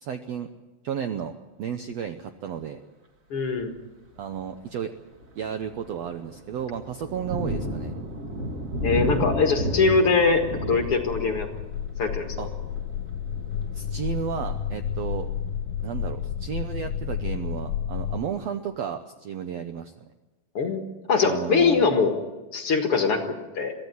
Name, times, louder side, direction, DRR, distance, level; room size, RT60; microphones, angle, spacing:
voice 1, 0.0-0.5 0.8-1.3 1.6-2.8 4.2-4.9 5.3-7.9 12.4-12.5 13.7-15.3 15.8-20.1 21.2-21.9, right 8 dB, 90° right, 7 dB, 1.4 m, -33 dB
voice 2, 3.3-3.7 8.8-11.5 12.0-12.3 20.5-22.2 22.5-23.7, left 4 dB, 45° left, 4 dB, 2.1 m, -22 dB
Thunder, 3.4-3.8 4.3-4.5 4.9-15.5, right 1 dB, 35° right, 1.4 m, -33 dB
sound 1, 10.2-18.2, left 8 dB, 80° left, 2.6 m, -31 dB
23.0 x 15.5 x 9.6 m, 1.1 s
omnidirectional pair, 4.2 m